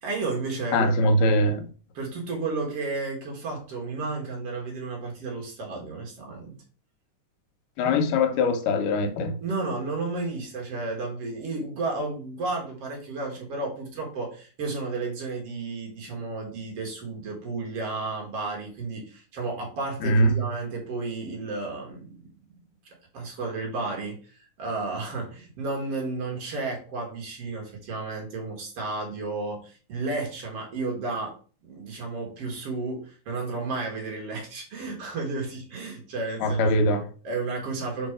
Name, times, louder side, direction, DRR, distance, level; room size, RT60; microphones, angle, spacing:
voice 1, 0.0-1.0 1.9-6.6 9.4-22.6 22.9-31.4 31.7-36.7 37.2-38.1, right 3 dB, 55° right, 2.3 m, -32 dB
voice 2, 0.7-1.7 7.8-9.4 20.0-20.4 36.4-37.1, left 1 dB, 85° left, 2.4 m, -22 dB
5.2 x 4.1 x 4.8 m
omnidirectional pair, 3.7 m